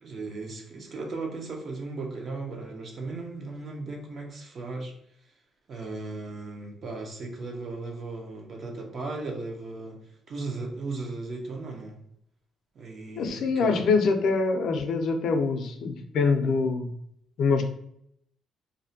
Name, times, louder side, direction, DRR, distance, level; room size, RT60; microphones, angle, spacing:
voice 1, 0.0-4.9 5.7-10.0 10.3-12.0 12.7-13.9, right 3 dB, 55° right, 2 dB, 0.6 m, -36 dB
voice 2, 13.2-16.9 17.4-17.6, left 4 dB, 75° left, 5 dB, 0.4 m, -24 dB
2.5 x 2.1 x 2.7 m, 0.71 s
cardioid pair, 90°, 0 cm